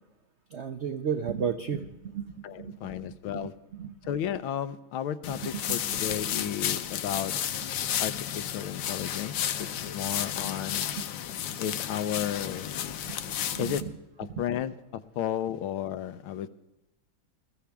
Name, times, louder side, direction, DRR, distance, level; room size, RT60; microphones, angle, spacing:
voice 1, 0.5-3.0 3.3-3.4 3.7-4.1 5.3-6.0 6.3-6.4 13.1-13.2 13.5-13.7, right 7 dB, 85° right, 7 dB, 0.6 m, -34 dB
voice 2, 2.4-3.5 4.0-7.3 8.0-10.9 11.6-12.7 13.6-13.8 14.2-16.5, left 10 dB, 85° left, 12 dB, 1.6 m, -33 dB
sound 1, 5.2-13.8, left 10 dB, 65° left, 1.2 m, -32 dB
21.0 x 14.5 x 3.5 m, 0.92 s
omnidirectional pair, 2.2 m